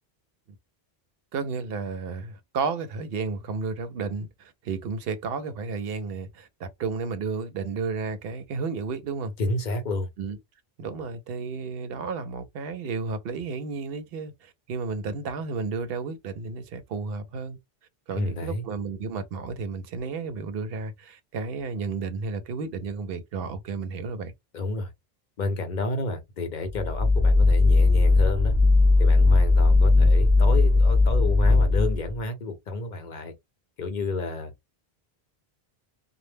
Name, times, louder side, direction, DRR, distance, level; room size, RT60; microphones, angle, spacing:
voice 1, 1.3-9.3 10.2-10.4 10.8-17.6 18.1-24.3, right 4 dB, 75° right, 0.8 m, -32 dB
voice 2, 9.4-10.1 18.1-18.6 24.5-24.9 25.4-28.5 29.0-33.3 33.8-34.5, left 2 dB, 55° left, 0.7 m, -30 dB
sound 1, 26.7-32.2, left 3 dB, 30° right, 0.7 m, -18 dB
2.1 x 2.0 x 3.2 m
omnidirectional pair, 1.0 m